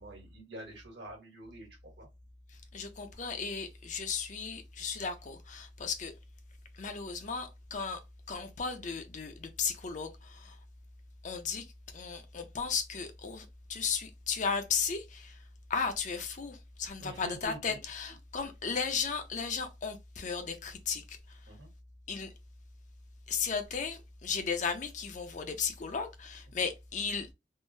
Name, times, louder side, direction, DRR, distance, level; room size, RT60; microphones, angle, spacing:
voice 1, 0.0-2.1 17.0-17.8 21.5-21.7 26.6-26.7, right 1 dB, 65° right, 1.3 m, -46 dB
voice 2, 2.7-6.1 6.7-8.0 8.3-10.6 11.2-11.7 11.9-15.4 15.7-21.4 22.1-22.3 23.3-27.3, left 5 dB, 45° left, 0.5 m, -35 dB
3.6 x 2.0 x 2.6 m
head